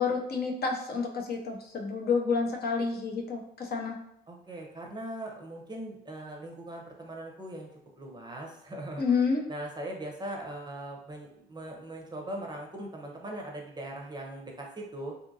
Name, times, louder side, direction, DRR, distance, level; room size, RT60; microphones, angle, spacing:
voice 1, 0.0-3.9 9.0-9.4, left 5 dB, 50° left, 1 dB, 0.6 m, -29 dB
voice 2, 4.3-7.7 8.0-9.2 9.5-15.2, right 1 dB, 20° right, 0 dB, 0.6 m, -40 dB
2.7 x 2.5 x 2.6 m, 0.74 s
cardioid pair, 90°, 20 cm